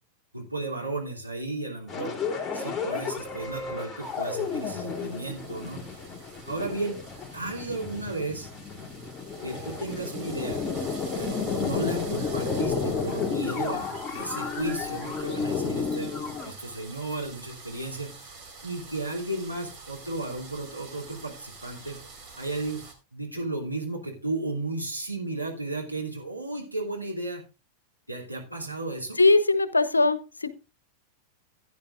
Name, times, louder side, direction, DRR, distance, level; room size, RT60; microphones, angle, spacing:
voice 1, 0.3-2.1 2.5-6.0 6.5-7.0 7.3-8.5 9.4-10.6 11.1-18.3 18.6-22.0 22.4-22.8 23.1-27.4 28.1-29.2, right 2 dB, 90° right, -2 dB, 2.9 m, -34 dB
sound 1, 1.9-16.5, left 5 dB, 15° left, 3.1 m, -32 dB
sound 2, 4.0-22.9, right 4 dB, 30° right, 4.3 m, -47 dB
voice 2, 29.2-30.5, left 3 dB, 80° left, 15 dB, 0.8 m, -21 dB
16.0 x 9.6 x 2.5 m, 0.31 s
figure-of-eight pair, 90°, 0 cm